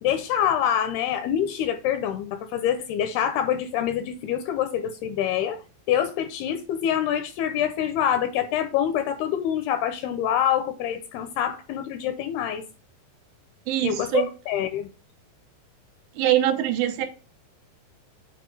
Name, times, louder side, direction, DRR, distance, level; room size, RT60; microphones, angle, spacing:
voice 1, 0.0-5.6 5.9-12.6 13.8-14.9, left 10 dB, 85° left, 2.4 m, -26 dB
voice 2, 13.7-14.3 16.2-17.1, right 12 dB, 75° right, 2.9 m, -23 dB
8.1 x 4.8 x 4.6 m
omnidirectional pair, 5.1 m